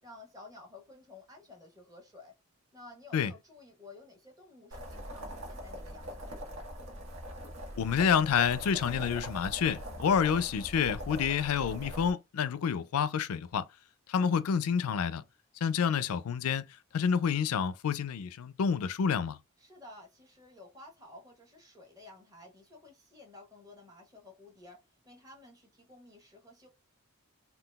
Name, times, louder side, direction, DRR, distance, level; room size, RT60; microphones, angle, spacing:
voice 1, 0.0-2.3 2.7-6.5 19.6-26.7, left 2 dB, 15° right, 1.0 m, -53 dB
sound 1, 4.7-12.1, equal, 75° right, 1.2 m, -42 dB
voice 2, 7.8-13.7 14.1-15.2 15.6-16.6 16.9-19.4, left 7 dB, 90° left, 0.4 m, -28 dB
3.8 x 2.3 x 2.3 m
head